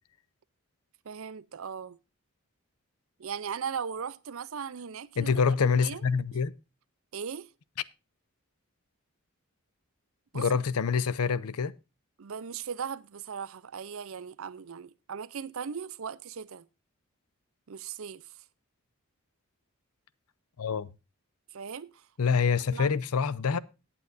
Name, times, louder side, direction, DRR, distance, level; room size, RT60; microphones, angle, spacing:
voice 1, 1.0-2.0 3.2-5.3 5.6-6.0 7.1-7.5 10.3-10.5 12.2-16.7 17.7-18.3 21.5-22.1 22.7-23.0, right 7 dB, 70° right, 0.5 m, -38 dB
voice 2, 5.2-6.5 10.3-11.7 20.6-20.9 22.2-23.6, left 5 dB, 90° left, 0.6 m, -26 dB
17.5 x 8.6 x 2.6 m
head